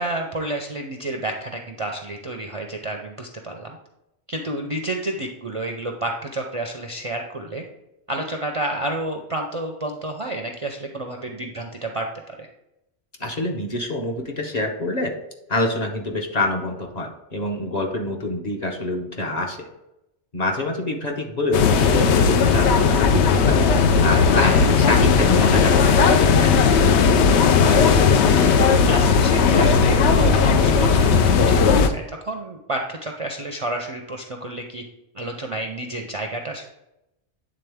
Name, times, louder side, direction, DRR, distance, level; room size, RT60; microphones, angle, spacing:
voice 1, 0.0-3.8 4.3-7.6 8.1-12.5 24.3-24.6 27.5-34.8 35.1-36.7, right 1 dB, 40° right, 2 dB, 0.5 m, -30 dB
voice 2, 13.2-15.1 15.5-19.7 20.3-23.6 24.0-24.5 24.8-26.6, left 2 dB, 40° left, 1 dB, 0.9 m, -26 dB
sound 1, 21.5-31.9, left 5 dB, 75° left, 0.8 m, -16 dB
8.9 x 3.7 x 3.4 m, 0.89 s
omnidirectional pair, 1.2 m